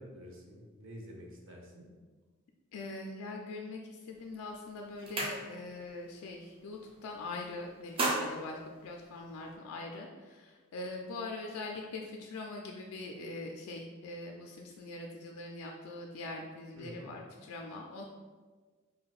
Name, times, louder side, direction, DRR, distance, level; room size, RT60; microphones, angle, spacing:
voice 1, 0.0-1.9 16.7-17.1, equal, 65° right, -1 dB, 0.7 m, -48 dB
voice 2, 2.7-18.0, left 2 dB, 85° left, 1 dB, 0.4 m, -42 dB
sound 1, 4.2-4.4 4.7-5.9 6.2-6.5 6.8-7.4 7.7-9.6, right 2 dB, 25° right, 0.4 m, -36 dB
4.9 x 2.1 x 2.4 m, 1.4 s
head